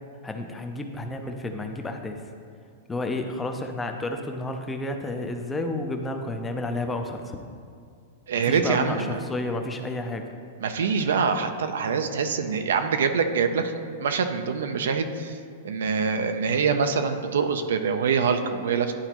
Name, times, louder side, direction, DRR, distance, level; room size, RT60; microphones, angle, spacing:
voice 1, 0.2-2.2 2.9-7.4 8.4-10.3, left 2 dB, 10° left, 5 dB, 0.5 m, -31 dB
voice 2, 8.3-9.1 10.6-13.7 14.0-15.4 15.6-18.9, right 5 dB, 85° right, 7 dB, 0.5 m, -24 dB
11.0 x 3.9 x 2.9 m, 2.3 s
hypercardioid pair, 150°, 0 cm